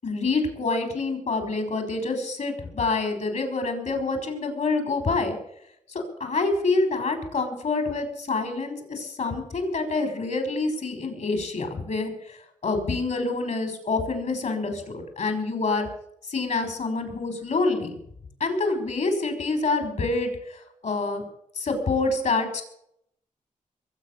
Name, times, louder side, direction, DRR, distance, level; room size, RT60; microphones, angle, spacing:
voice 1, 0.0-5.4 5.9-12.4 12.6-15.9 16.3-18.0 18.4-21.3 21.6-22.6, left 3 dB, 65° left, 6 dB, 6.1 m, -27 dB
22.5 x 8.8 x 7.0 m, 0.72 s
cardioid pair, 70°, 14 cm